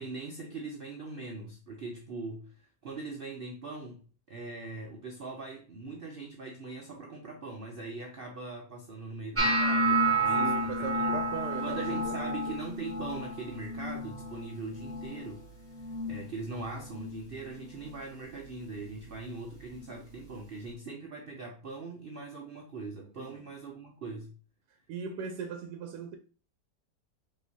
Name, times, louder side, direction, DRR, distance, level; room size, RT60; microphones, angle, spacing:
voice 1, 0.0-2.5 2.8-4.0 4.3-11.2 11.6-15.4 16.0-24.3, right 3 dB, 60° right, 0.5 m, -41 dB
sound 1, 9.4-15.5 15.7-16.2 16.6-17.1 17.8-18.0 19.7-19.8, right 2 dB, 10° right, 1.3 m, -30 dB
voice 2, 10.4-12.6 23.2-23.5 24.9-26.2, right 6 dB, 85° right, 1.2 m, -39 dB
5.3 x 3.1 x 2.6 m
omnidirectional pair, 1.8 m